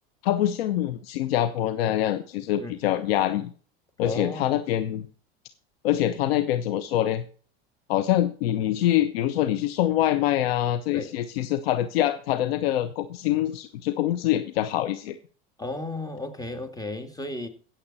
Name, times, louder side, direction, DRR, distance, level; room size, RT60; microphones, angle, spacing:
voice 1, 0.2-3.5 4.0-5.1 5.8-7.2 7.9-15.2, left 12 dB, 75° left, 1.1 m, -25 dB
voice 2, 4.0-4.6 10.9-11.1 15.6-17.5, left 2 dB, 10° left, 2.6 m, -34 dB
16.0 x 7.7 x 4.3 m
hypercardioid pair, 95°, 30 cm